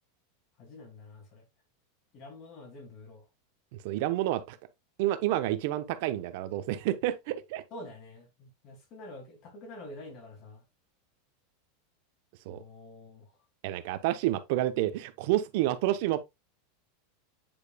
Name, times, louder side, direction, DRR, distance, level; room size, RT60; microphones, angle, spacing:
voice 1, 0.6-1.4 2.1-3.2 7.7-10.6 12.5-13.3, left 2 dB, 35° left, 2.7 m, -47 dB
voice 2, 3.8-4.6 5.0-7.6 12.5-12.6 13.6-16.2, right 14 dB, 55° right, 0.8 m, -29 dB
8.8 x 4.9 x 2.3 m
supercardioid pair, 160°, 0 cm